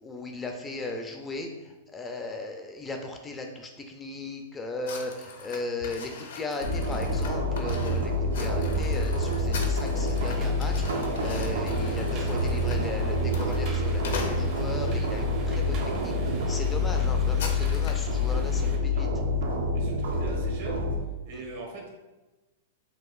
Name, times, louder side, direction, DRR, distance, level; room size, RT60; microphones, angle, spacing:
voice 1, 0.0-19.1 21.3-21.4, left 2 dB, 15° left, 3 dB, 0.3 m, -37 dB
sound 1, 4.8-15.0 15.6-15.8 16.2-16.3 16.6-18.1, left 4 dB, 75° left, 0.6 m, -41 dB
sound 2, 6.6-21.0, left 2 dB, 80° right, 0.6 m, -27 dB
sound 3, 10.1-18.8, right 3 dB, 40° right, 0.6 m, -46 dB
voice 2, 19.7-20.9 21.2-21.9, right 2 dB, 60° right, 0 dB, 0.9 m, -40 dB
3.8 x 2.4 x 2.3 m, 1.1 s
hypercardioid pair, 130°, 0 cm